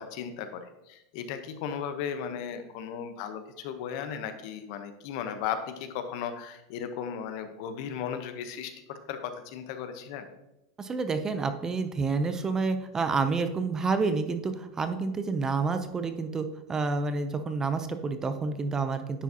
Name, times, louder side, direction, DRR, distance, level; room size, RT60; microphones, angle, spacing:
voice 1, 0.0-10.3, left 8 dB, 55° left, 8 dB, 0.8 m, -36 dB
voice 2, 10.8-19.2, right 4 dB, 15° right, 9 dB, 0.5 m, -29 dB
9.8 x 4.8 x 2.8 m, 0.91 s
supercardioid pair, 140°, 3 cm